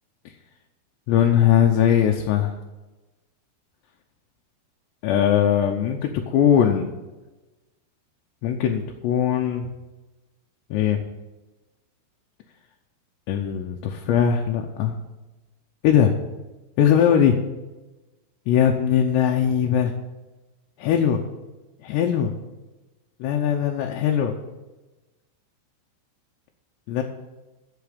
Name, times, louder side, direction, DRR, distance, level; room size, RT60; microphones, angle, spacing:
voice 1, 1.1-2.5 5.0-6.9 8.4-9.7 10.7-11.0 13.3-14.9 15.8-16.1 16.8-17.4 18.5-19.9 20.8-21.2 21.8-22.3 23.2-24.4 26.9-27.0, left 9 dB, 80° left, 2 dB, 2.8 m, -20 dB
8.4 x 7.0 x 8.3 m, 1.1 s
omnidirectional pair, 5.4 m